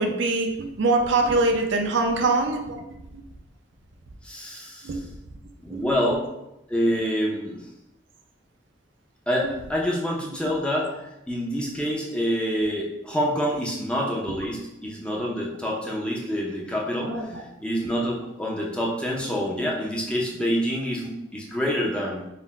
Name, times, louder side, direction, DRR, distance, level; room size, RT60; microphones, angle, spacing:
voice 1, 0.0-2.8 4.8-5.0 5.7-6.0 17.0-17.4, right 3 dB, 70° right, 4 dB, 0.5 m, -23 dB
voice 2, 4.2-4.9 5.6-6.3 6.7-7.6 9.3-22.2, equal, 5° left, -3 dB, 0.5 m, -27 dB
4.0 x 2.1 x 4.2 m, 0.89 s
head